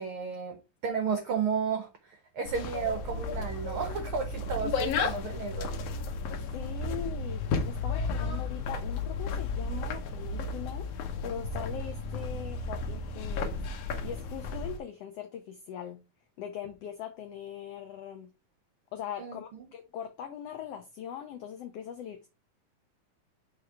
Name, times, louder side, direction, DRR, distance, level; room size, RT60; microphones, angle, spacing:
voice 1, 0.0-5.7 19.2-19.6, right 6 dB, 80° right, 1.2 m, -33 dB
sound 1, 2.5-14.8, left 3 dB, 70° left, 1.6 m, -33 dB
voice 2, 6.5-10.9 11.2-13.5 13.8-16.0 16.4-18.3 18.9-22.3, left 9 dB, 85° left, 1.4 m, -41 dB
6.5 x 3.6 x 4.6 m
omnidirectional pair, 3.7 m